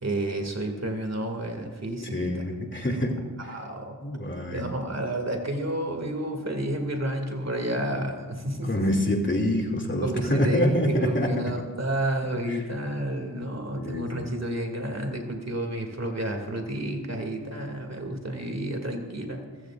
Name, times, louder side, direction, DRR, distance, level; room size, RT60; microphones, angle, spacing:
voice 1, 0.0-2.4 3.4-4.0 4.5-8.9 10.0-19.4, right 1 dB, 40° right, 3 dB, 2.6 m, -31 dB
voice 2, 2.1-3.1 4.0-4.6 8.6-11.3 13.8-14.1, left 1 dB, 30° left, 2 dB, 2.8 m, -26 dB
23.5 x 15.5 x 2.6 m, 1.4 s
cardioid pair, 50°, 39 cm